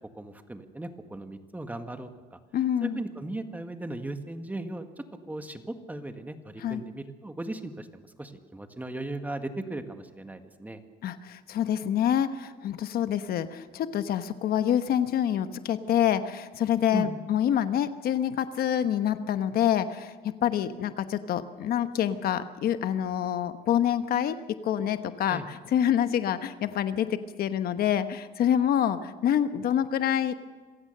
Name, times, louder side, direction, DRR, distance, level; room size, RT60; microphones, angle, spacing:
voice 1, 0.1-2.4 2.8-10.8 16.9-17.2 25.3-25.5, right 2 dB, 10° right, 6 dB, 1.8 m, -37 dB
voice 2, 2.5-3.0 6.6-6.8 11.0-30.3, left 10 dB, 65° left, 10 dB, 1.1 m, -27 dB
26.5 x 16.0 x 6.7 m, 1.4 s
cardioid pair, 110°, 17 cm